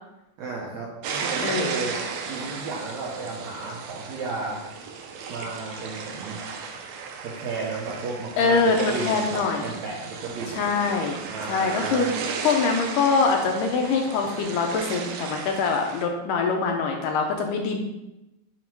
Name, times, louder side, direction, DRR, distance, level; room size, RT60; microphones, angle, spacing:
voice 1, 0.4-1.9 2.3-4.6 5.3-6.4 7.2-10.6 11.3-12.1, right 3 dB, 70° right, -3 dB, 1.9 m, -33 dB
sound 1, 1.0-16.0, right 5 dB, 85° right, 1.7 m, -35 dB
voice 2, 8.4-9.6 10.5-11.2 11.5-12.1 12.4-17.8, left 4 dB, 80° left, 3 dB, 2.1 m, -24 dB
7.3 x 3.0 x 4.5 m, 0.93 s
omnidirectional pair, 4.1 m